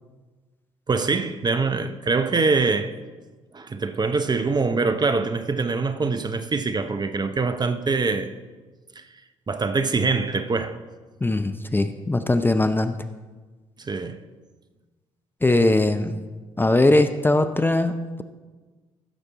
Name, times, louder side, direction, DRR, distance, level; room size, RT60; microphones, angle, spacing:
voice 1, 0.9-2.9 3.5-8.3 9.0-9.1 9.5-10.8 13.8-14.2, right 4 dB, 25° right, 0.7 m, -24 dB
voice 2, 11.2-13.0 15.4-16.2 16.6-17.9, left 2 dB, 15° left, 0.6 m, -20 dB
15.5 x 6.8 x 4.1 m
figure-of-eight pair, 45°, 16 cm